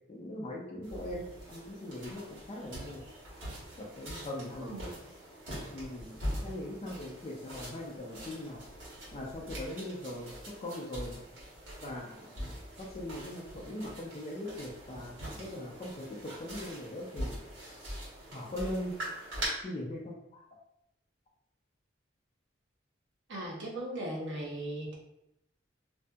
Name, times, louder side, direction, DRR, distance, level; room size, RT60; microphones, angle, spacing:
voice 1, 0.1-3.0 3.8-4.7 5.7-8.6 9.1-11.2 11.8-17.4 17.7-17.8 18.3-19.0 19.6-20.4, left 1 dB, 30° left, -3 dB, 0.4 m, -40 dB
sound 1, 0.8-19.5, equal, 85° right, 1.2 m, -43 dB
voice 2, 4.6-5.0 23.3-25.0, right 1 dB, 70° right, -2 dB, 0.7 m, -38 dB
2.6 x 2.6 x 2.3 m, 0.82 s
head